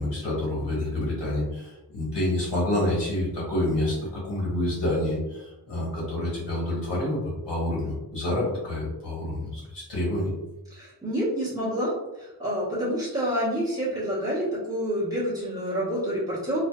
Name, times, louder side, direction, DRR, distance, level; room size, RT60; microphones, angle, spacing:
voice 1, 0.0-10.3, left 1 dB, 75° left, -5 dB, 1.3 m, -28 dB
voice 2, 10.7-16.6, equal, 10° right, -10 dB, 1.0 m, -28 dB
2.6 x 2.3 x 2.3 m, 1.0 s
wide cardioid pair, 85°, 43 cm